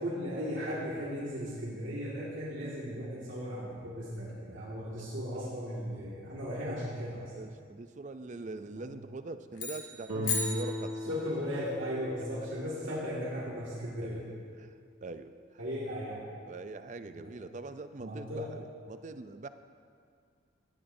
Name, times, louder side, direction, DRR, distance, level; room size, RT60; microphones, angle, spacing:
voice 1, 0.0-7.3 8.6-8.8 11.1-14.3 15.6-16.3 17.1-17.3 18.0-18.5, equal, 70° right, -7 dB, 2.0 m, -36 dB
voice 2, 7.3-11.2 14.1-15.3 16.5-19.5, right 3 dB, 35° right, 10 dB, 0.4 m, -43 dB
sound 1, 9.5-11.5, left 4 dB, 65° left, 1.8 m, -36 dB
Guitar, 10.1-14.9, left 1 dB, 90° right, 2.5 m, -39 dB
16.5 x 12.5 x 2.7 m, 2.2 s
head